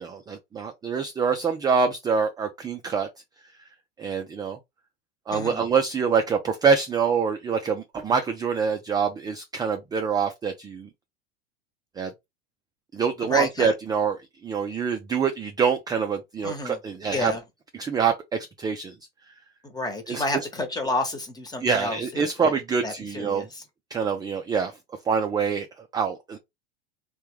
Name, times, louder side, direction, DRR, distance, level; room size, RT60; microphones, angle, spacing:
voice 1, 0.0-3.1 4.0-4.6 5.3-10.9 12.0-12.1 12.9-14.2 14.4-17.3 17.8-18.9 20.1-20.2 21.6-23.5 23.9-24.7 25.1-25.7 25.9-26.4, right 6 dB, 15° right, 0.4 m, -25 dB
voice 2, 5.3-5.6 13.2-13.7 16.4-16.8 17.1-17.4 19.6-22.5 22.8-23.6, left 2 dB, 15° left, 1.1 m, -30 dB
3.3 x 2.3 x 3.1 m
hypercardioid pair, 95°, 30 cm